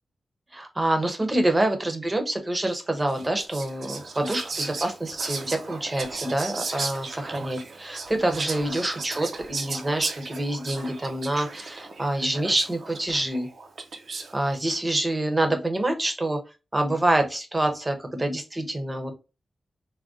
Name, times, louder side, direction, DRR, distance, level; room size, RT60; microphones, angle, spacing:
voice 1, 0.5-13.5 14.3-16.4 16.7-19.2, right 1 dB, 20° right, 6 dB, 0.6 m, -26 dB
Whispering, 3.1-14.4, right 4 dB, 65° right, 0.5 m, -35 dB
3.5 x 2.2 x 2.4 m, 0.29 s
wide cardioid pair, 125°, 0 cm